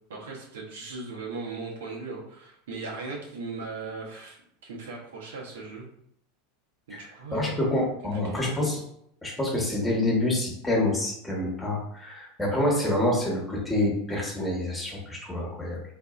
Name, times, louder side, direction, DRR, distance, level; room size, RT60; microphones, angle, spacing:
voice 1, 0.1-4.4 4.6-5.9 6.9-8.4, right 3 dB, 65° right, -3 dB, 0.9 m, -38 dB
voice 2, 7.3-8.8 9.2-15.8, left 1 dB, 10° left, -2 dB, 1.2 m, -27 dB
4.5 x 2.6 x 2.4 m, 0.72 s
figure-of-eight pair, 80°, 0 cm